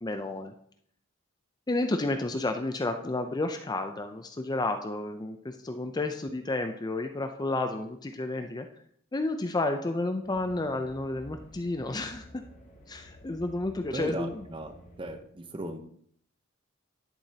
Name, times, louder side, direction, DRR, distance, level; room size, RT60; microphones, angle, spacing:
voice 1, 0.0-0.5 1.7-8.7 9.1-12.4 12.9-14.5, left 2 dB, 20° left, 7 dB, 0.5 m, -31 dB
sound 1, 10.2-15.2, left 1 dB, 40° left, 1.3 m, -52 dB
voice 2, 13.9-14.7 15.0-15.8, right 1 dB, 25° right, 7 dB, 0.8 m, -37 dB
11.0 x 7.0 x 2.8 m, 0.64 s
head